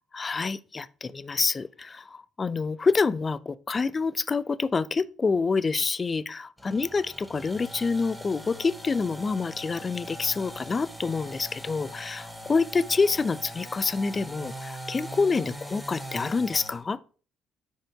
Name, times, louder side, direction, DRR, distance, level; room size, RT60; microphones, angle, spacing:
voice 1, 0.1-17.0, left 4 dB, 30° left, 0.5 m, -27 dB
sound 1, 6.6-16.8, equal, ahead, 2.3 m, -41 dB
6.6 x 5.1 x 5.6 m
hypercardioid pair, 50°, 0 cm